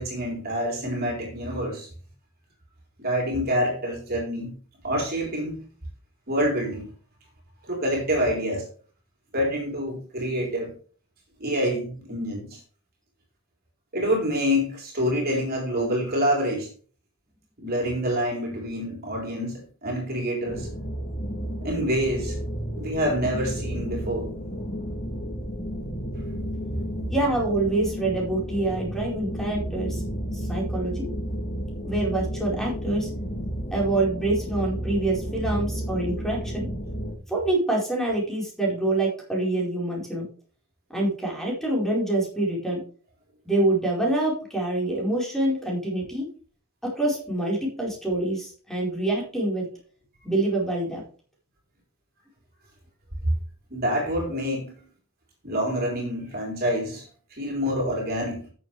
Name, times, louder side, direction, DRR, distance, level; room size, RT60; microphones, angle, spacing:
voice 1, 0.0-1.9 3.0-4.5 4.8-5.6 6.3-6.9 7.7-8.6 9.3-10.7 11.4-12.6 13.9-16.7 17.6-20.7 21.6-22.4 22.8-24.3 53.7-54.7 55.4-57.0 57.3-58.4, equal, 45° right, 0 dB, 4.1 m, -27 dB
sound 1, 20.5-37.1, equal, 30° left, 2.9 m, -32 dB
voice 2, 27.1-30.0 30.3-31.1 31.8-33.1 33.7-36.7 37.3-40.2 40.9-42.8 43.4-46.3 46.8-49.7 50.2-51.0, right 2 dB, ahead, -3 dB, 4.6 m, -26 dB
13.5 x 7.4 x 3.4 m, 0.40 s
head